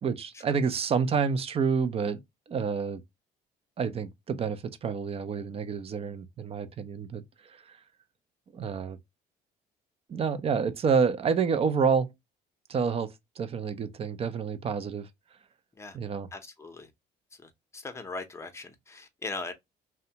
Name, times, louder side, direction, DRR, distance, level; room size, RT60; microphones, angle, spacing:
voice 1, 0.0-2.2 2.5-3.0 3.8-7.8 8.5-9.0 10.1-12.1 12.7-15.1 15.9-16.3, right 6 dB, 35° right, 0.5 m, -28 dB
voice 2, 16.3-16.9 17.4-19.5, left 3 dB, 15° left, 0.7 m, -39 dB
2.7 x 2.2 x 2.6 m
cardioid pair, 110°, 17 cm